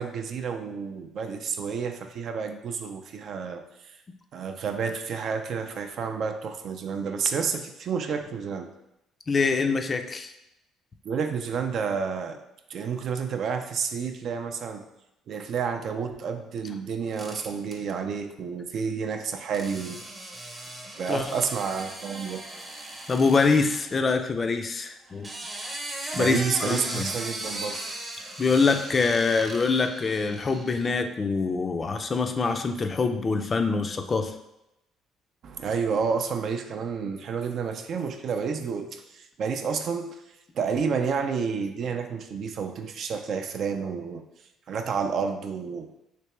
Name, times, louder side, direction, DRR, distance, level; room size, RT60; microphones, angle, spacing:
voice 1, 0.0-3.9 4.3-8.7 11.0-12.4 12.7-14.8 15.3-20.0 21.0-22.4 26.1-27.7 35.4-40.1 40.6-44.2 44.7-45.9, right 6 dB, 60° right, 6 dB, 0.4 m, -30 dB
voice 2, 9.3-10.3 21.1-21.3 23.1-25.3 26.2-27.0 28.4-34.3, left 4 dB, 30° left, 6 dB, 0.4 m, -24 dB
sound 1, 17.2-17.8 19.5-23.9 25.0-30.9, right 1 dB, 20° right, 0.7 m, -38 dB
3.3 x 2.8 x 3.1 m, 0.86 s
cardioid pair, 90°, 0 cm